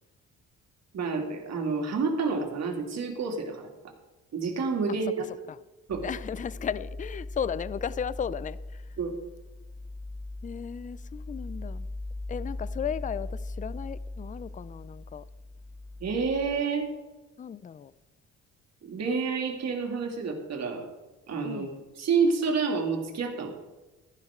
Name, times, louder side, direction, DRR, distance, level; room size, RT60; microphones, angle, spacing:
voice 1, 0.9-3.7 4.3-5.2 5.9-6.0 9.0-9.1 16.0-16.9 18.8-20.9 21.3-21.7 22.0-23.5, right 5 dB, 60° right, 2.7 m, -29 dB
sound 1, 5.9-16.6, left 2 dB, 40° left, 1.5 m, -39 dB
voice 2, 6.0-8.8 10.4-11.9 12.3-15.2 17.4-17.9 21.4-21.8, left 8 dB, 25° left, 0.5 m, -35 dB
14.0 x 11.0 x 3.8 m
cardioid pair, 90°, 30 cm